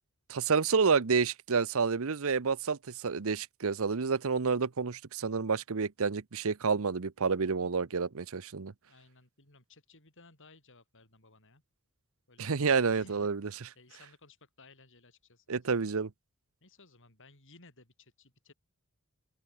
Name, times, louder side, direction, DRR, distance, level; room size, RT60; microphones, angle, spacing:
voice 1, 0.3-8.7 12.4-13.7 15.5-16.1, right 5 dB, 70° right, 0.8 m, -29 dB
voice 2, 8.8-11.6 12.3-15.7 16.6-18.5, left 3 dB, 60° left, 7.4 m, -59 dB
open air
head